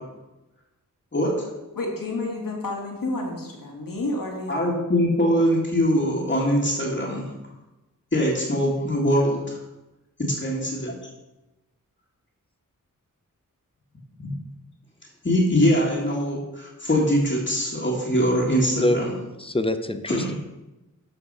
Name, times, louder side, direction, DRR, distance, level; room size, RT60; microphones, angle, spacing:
voice 1, 1.8-4.8, left 2 dB, 80° left, 0 dB, 2.3 m, -30 dB
voice 2, 4.5-7.3 8.1-9.6 10.2-10.9 14.2-14.4 15.2-19.1 20.1-20.3, equal, 35° left, -6 dB, 1.9 m, -22 dB
voice 3, 19.4-20.3, left 1 dB, 15° left, 9 dB, 0.6 m, -24 dB
13.0 x 4.5 x 5.5 m, 1.0 s
wide cardioid pair, 110°, 33 cm